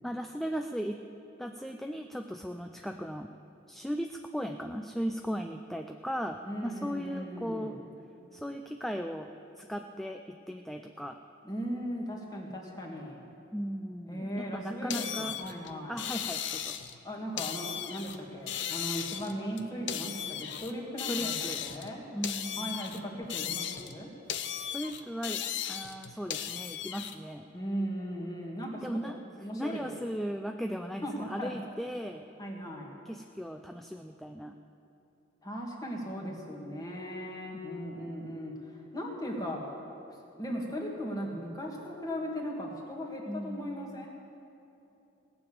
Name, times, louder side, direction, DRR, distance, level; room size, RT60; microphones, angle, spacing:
voice 1, 0.0-1.0 1.4-3.3 3.7-7.8 8.3-9.3 9.6-11.2 13.5-15.4 15.9-16.8 21.1-21.6 22.1-22.8 24.7-25.4 25.7-27.5 28.8-29.2 29.5-32.2 33.1-34.5 43.3-44.1, equal, ahead, 5 dB, 0.3 m, -37 dB
voice 2, 6.4-7.9 11.4-13.3 14.1-16.0 17.0-22.0 22.6-24.1 27.5-29.0 29.4-29.9 31.0-31.5 32.4-32.9 35.4-39.9 40.4-44.1, equal, 20° left, -2 dB, 2.1 m, -38 dB
sound 1, 14.9-17.0 17.4-18.2 18.5-20.7 21.0-21.9 22.2-24.0 24.3-27.1, left 9 dB, 70° left, 0.7 m, -36 dB
18.0 x 7.0 x 8.7 m, 2.9 s
head